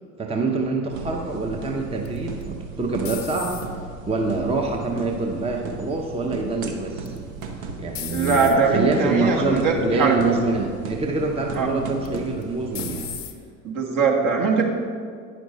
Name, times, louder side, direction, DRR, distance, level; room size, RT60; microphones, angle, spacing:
voice 1, 0.2-3.6 4.1-7.2 7.8-13.2, right 3 dB, 15° right, 2 dB, 0.8 m, -25 dB
sound 1, 0.9-13.2, right 4 dB, 75° right, 0.9 m, -36 dB
sound 2, 2.0-4.0 4.5-5.0 7.0-7.4 7.9-8.6 9.4-9.6 10.0-10.1 12.0-12.4 12.7-13.4, left 10 dB, 40° left, 0.7 m, -35 dB
voice 2, 8.1-10.2 11.5-11.7 13.6-14.7, right 4 dB, 50° right, 0 dB, 1.4 m, -21 dB
9.6 x 6.0 x 4.1 m, 2.1 s
figure-of-eight pair, 60°, 41 cm